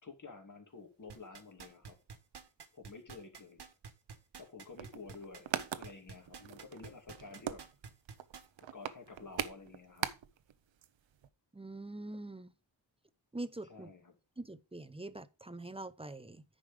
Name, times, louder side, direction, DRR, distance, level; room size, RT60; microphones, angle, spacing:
voice 1, 0.0-2.0 2.7-3.6 4.4-5.5 5.8-7.6 8.7-10.1 13.7-14.2, left 4 dB, 40° left, 2.5 m, -51 dB
sound 1, 1.1-8.6 9.1-9.2, right 5 dB, 60° right, 1.5 m, -50 dB
sound 2, 4.7-10.5 10.8-10.9 11.1-11.3, right 9 dB, 80° right, 0.8 m, -41 dB
voice 2, 11.5-12.5 13.3-13.9 14.4-16.4, right 2 dB, 15° right, 0.6 m, -44 dB
9.9 x 5.3 x 4.9 m
wide cardioid pair, 95°, 45 cm